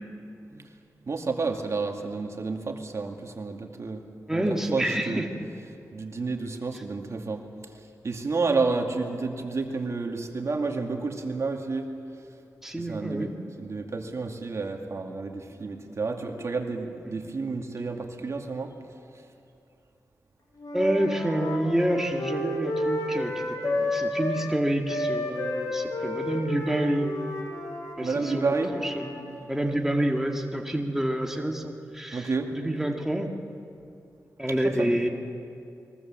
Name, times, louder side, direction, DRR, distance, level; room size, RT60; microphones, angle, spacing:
voice 1, 1.1-4.0 4.3-5.3 5.9-7.4 8.0-11.9 12.8-13.3 13.6-18.7 28.0-28.7 32.1-32.5 34.6-35.0, right 4 dB, 50° right, 3 dB, 2.3 m, -30 dB
voice 2, 4.3-5.3 6.7-6.8 12.6-13.4 20.7-23.3 23.6-27.1 28.0-33.3 34.4-35.1, right 1 dB, 5° right, 1 dB, 2.1 m, -28 dB
Wind instrument woodwind instrument, 20.6-24.5 24.9-29.2, left 1 dB, 75° left, 6.3 m, -31 dB
29.5 x 22.0 x 7.5 m, 2.7 s
wide cardioid pair, 100°, 6 cm